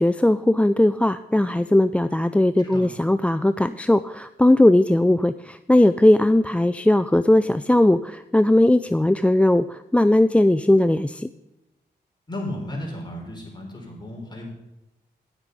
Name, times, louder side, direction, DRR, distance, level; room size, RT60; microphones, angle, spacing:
voice 1, 0.0-11.3, left 1 dB, 5° left, 14 dB, 0.3 m, -18 dB
voice 2, 12.3-14.4, left 1 dB, 25° left, 0 dB, 4.1 m, -34 dB
10.5 x 8.1 x 5.3 m, 0.99 s
cardioid pair, 60°, 18 cm